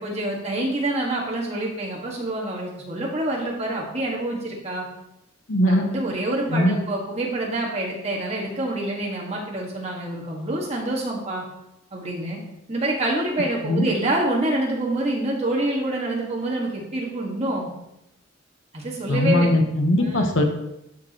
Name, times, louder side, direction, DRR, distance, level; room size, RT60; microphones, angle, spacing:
voice 1, 0.0-4.9 5.7-11.4 11.9-12.4 12.7-17.7 18.7-19.6 20.0-20.3, right 1 dB, 30° right, -3 dB, 1.7 m, -26 dB
voice 2, 5.5-5.9 6.5-6.8 13.6-13.9 19.1-20.4, left 1 dB, 70° left, 4 dB, 1.1 m, -20 dB
12.5 x 4.9 x 3.0 m, 0.86 s
head